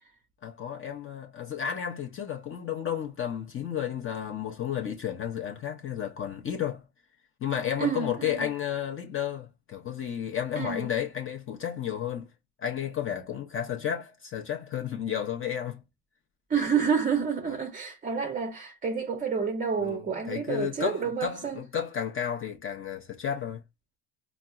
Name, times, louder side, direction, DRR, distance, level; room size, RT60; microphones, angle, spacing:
voice 1, 0.4-6.9 7.4-12.3 12.6-15.8 19.8-23.6, left 9 dB, 30° left, 0.6 m, -32 dB
voice 2, 7.8-8.5 10.6-10.9 16.5-21.6, right 6 dB, 20° right, 0.5 m, -29 dB
4.1 x 2.0 x 2.3 m
supercardioid pair, 110°, 40 cm